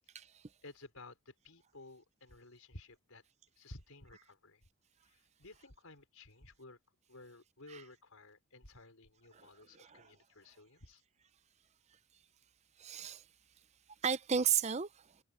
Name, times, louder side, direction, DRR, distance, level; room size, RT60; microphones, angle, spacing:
voice 1, 0.6-3.2 3.6-4.6 5.0-6.8 7.1-11.0, left 2 dB, 75° left, 4.7 m, -55 dB
voice 2, 9.3-10.1 12.8-13.3 14.0-15.2, right 7 dB, 30° right, 0.5 m, -35 dB
head